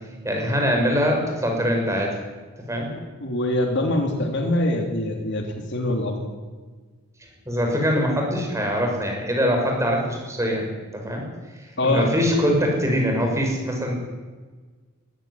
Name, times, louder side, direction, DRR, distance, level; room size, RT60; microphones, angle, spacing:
voice 1, 0.2-2.1 2.7-2.9 7.5-10.7 10.9-11.2 11.8-13.9, equal, 15° right, 1 dB, 5.9 m, -23 dB
voice 2, 3.2-6.3 11.8-12.1, left 1 dB, 55° left, 3 dB, 3.1 m, -24 dB
22.5 x 13.5 x 9.8 m, 1.4 s
head